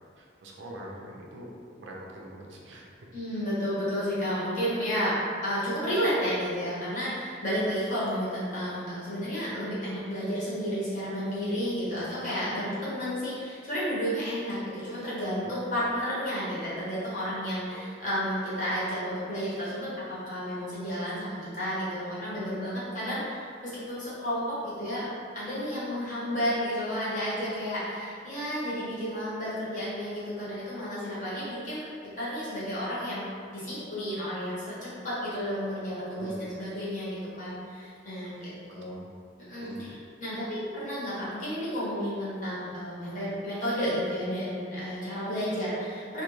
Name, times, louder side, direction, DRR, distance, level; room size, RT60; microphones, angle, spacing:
voice 1, 0.2-2.9 15.4-15.5 17.7-17.9 36.2-36.5 38.2-38.5 38.8-39.1 39.6-39.9, right 1 dB, 70° right, -2 dB, 0.4 m, -44 dB
voice 2, 3.1-5.1 5.4-25.1 25.3-31.9 32.2-38.9 39.5-46.2, equal, 40° left, -10 dB, 0.9 m, -32 dB
2.3 x 2.2 x 3.0 m, 2.2 s
head